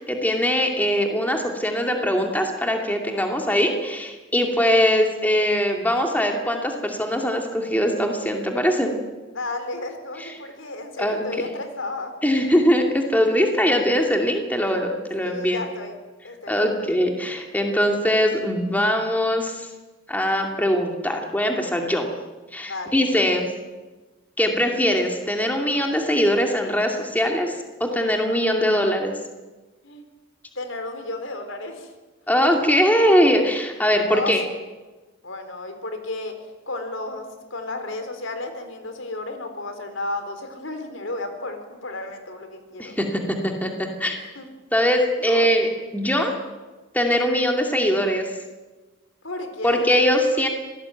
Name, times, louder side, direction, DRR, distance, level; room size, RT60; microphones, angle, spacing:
voice 1, 0.1-8.9 10.2-10.3 11.0-11.5 12.2-15.6 16.5-19.7 20.1-22.1 22.5-23.5 24.4-29.1 32.3-34.4 42.8-44.2 44.7-46.3 46.9-48.3 49.6-50.5, equal, 10° left, 2 dB, 2.4 m, -21 dB
voice 2, 9.3-12.1 15.2-15.9 16.2-16.9 22.6-23.2 29.8-30.1 30.6-31.9 32.4-32.7 34.1-34.3 35.2-36.4 36.7-43.0 44.4-44.5 45.3-45.5 49.2-49.9, left 2 dB, 75° left, 7 dB, 4.1 m, -33 dB
26.0 x 18.5 x 9.2 m, 1.2 s
head